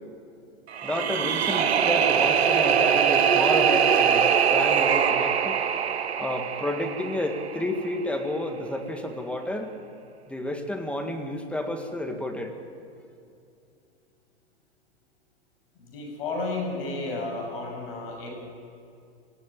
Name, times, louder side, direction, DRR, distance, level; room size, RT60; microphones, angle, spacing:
sound 1, 0.7-7.8, right 7 dB, 75° right, 1.4 m, -23 dB
voice 1, 0.8-5.6 6.2-9.7 10.3-12.5, left 1 dB, 5° left, 4 dB, 1.8 m, -30 dB
voice 2, 15.8-18.4, left 2 dB, 60° left, 2 dB, 7.1 m, -32 dB
19.0 x 16.0 x 8.8 m, 2.5 s
hypercardioid pair, 110°, 32 cm